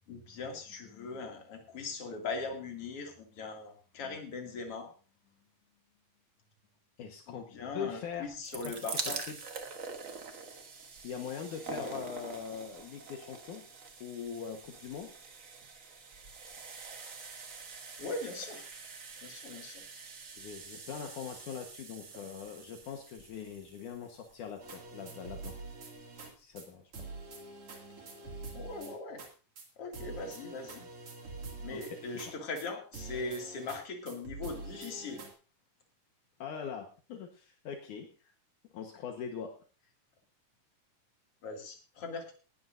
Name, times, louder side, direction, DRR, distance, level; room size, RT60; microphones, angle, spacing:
voice 1, 0.1-4.9 7.3-9.2 11.7-11.9 18.0-18.7 19.2-19.9 28.5-29.2 29.8-30.9 31.6-35.2 41.4-42.3, left 3 dB, 50° left, 2 dB, 3.3 m, -40 dB
voice 2, 7.0-7.5 7.7-8.8 9.3-9.4 11.0-13.6 14.0-15.1 20.4-25.5 26.4-26.9 31.7-32.0 36.4-38.1 38.7-39.5, left 7 dB, 75° left, 3 dB, 2.8 m, -42 dB
sound 1, 8.2-25.2 26.0-26.1 26.3-26.4, right 4 dB, 65° right, 0.8 m, -45 dB
sound 2, 24.6-26.3 26.6-26.7 26.9-29.3 29.6-29.7 29.9-32.7 32.9-33.8 34.1-35.3, right 3 dB, 45° right, 3.3 m, -45 dB
19.0 x 13.0 x 2.6 m, 0.36 s
omnidirectional pair, 3.7 m